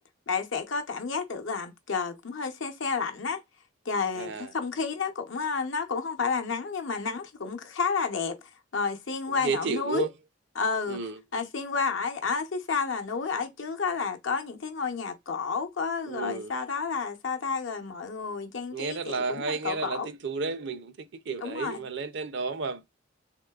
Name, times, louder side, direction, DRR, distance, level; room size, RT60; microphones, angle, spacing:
voice 1, 0.3-3.4 3.9-10.1 10.6-11.0 11.3-20.1 21.4-21.8, left 5 dB, 75° left, 0.8 m, -31 dB
voice 2, 4.1-4.5 9.3-10.1 10.9-11.2 16.1-16.5 18.7-22.8, right 4 dB, 65° right, 0.5 m, -32 dB
3.7 x 2.8 x 2.3 m
head